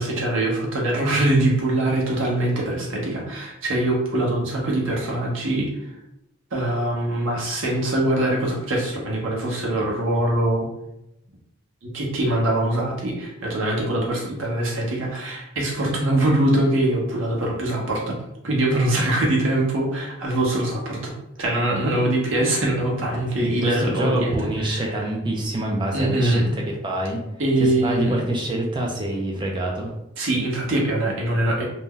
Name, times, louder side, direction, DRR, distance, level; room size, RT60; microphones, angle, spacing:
voice 1, 0.0-5.7 6.5-10.7 11.9-18.1 18.4-21.1 21.4-25.0 25.9-26.5 27.4-28.2 30.2-31.6, right 1 dB, 75° right, -2 dB, 0.9 m, -23 dB
voice 2, 23.4-27.2 27.6-29.9, right 1 dB, 25° right, -1 dB, 0.4 m, -26 dB
2.6 x 2.2 x 3.6 m, 0.85 s
head